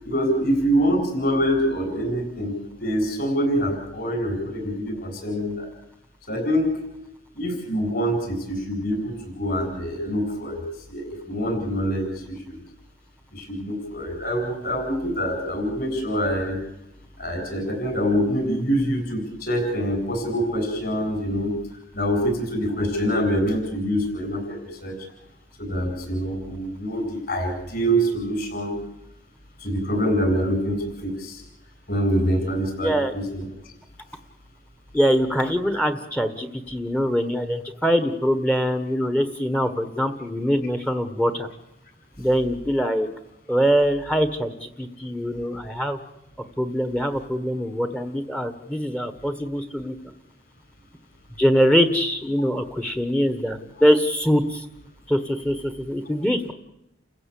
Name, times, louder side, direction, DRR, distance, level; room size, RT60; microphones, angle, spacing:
voice 1, 0.0-5.7 6.3-6.8 7.3-10.6 10.9-12.6 13.3-16.6 17.2-21.5 21.9-25.0 25.6-28.8 29.6-31.4 31.9-33.5, equal, 50° left, 4 dB, 7.9 m, -25 dB
voice 2, 32.8-33.1 34.9-41.5 42.2-43.1 43.5-46.0 46.6-49.9 51.4-54.6 55.1-56.5, equal, 5° left, 9 dB, 1.4 m, -23 dB
30.0 x 15.5 x 8.5 m, 0.88 s
head